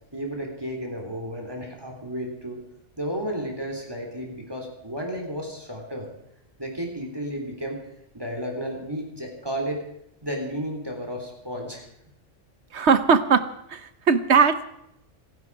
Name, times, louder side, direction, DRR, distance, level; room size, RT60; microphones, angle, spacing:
voice 1, 0.1-2.6 3.0-6.1 6.6-7.8 8.1-9.8 10.2-11.9, equal, 20° right, 1 dB, 3.6 m, -32 dB
voice 2, 12.7-13.4 13.7-14.6, right 5 dB, 65° right, 12 dB, 1.2 m, -19 dB
27.0 x 10.5 x 4.8 m, 0.79 s
omnidirectional pair, 1.3 m